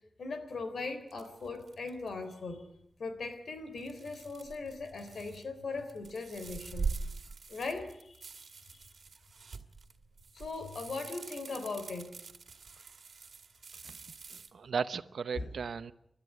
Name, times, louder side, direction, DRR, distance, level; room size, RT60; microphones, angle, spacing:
voice 1, 0.2-2.6 3.0-6.9 7.5-8.3 10.3-12.2 13.8-13.9 15.3-15.5, left 3 dB, 75° left, 3.7 m, -39 dB
sound 1, 1.1-2.1 3.8-5.4 5.8-14.5, right 4 dB, 65° right, 2.1 m, -43 dB
voice 2, 14.3-15.9, right 6 dB, 90° right, 0.9 m, -36 dB
29.5 x 13.0 x 9.9 m
wide cardioid pair, 140°, 0 cm